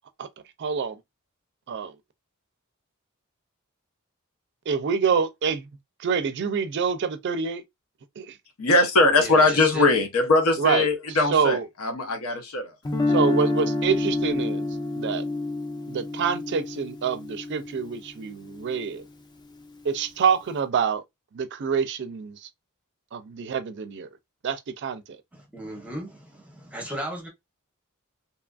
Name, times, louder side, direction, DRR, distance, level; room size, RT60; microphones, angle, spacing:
voice 1, 0.6-1.0 1.7-1.9 4.7-5.6 6.0-7.6 8.2-8.3 10.6-10.9 11.3-11.7 13.1-14.7 15.0-15.2 15.9-19.0 19.9-21.0 21.3-22.4 23.1-24.1 24.4-25.0, right 6 dB, 55° right, 0.4 m, -26 dB
voice 2, 8.6-12.7, left 2 dB, 85° left, 0.8 m, -21 dB
voice 3, 9.2-9.9 25.3-27.3, equal, 5° right, 0.8 m, -35 dB
Guitar, 12.8-18.9, left 2 dB, 20° left, 0.4 m, -28 dB
2.8 x 2.4 x 2.3 m
head